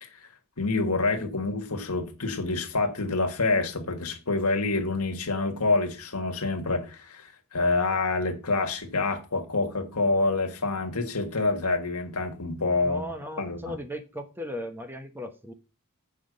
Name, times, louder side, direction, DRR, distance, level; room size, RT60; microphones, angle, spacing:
voice 1, 0.6-13.0 13.4-13.8, left 3 dB, 85° left, 1.7 m, -27 dB
voice 2, 12.8-15.5, equal, 10° right, 0.9 m, -37 dB
8.4 x 5.8 x 5.2 m
head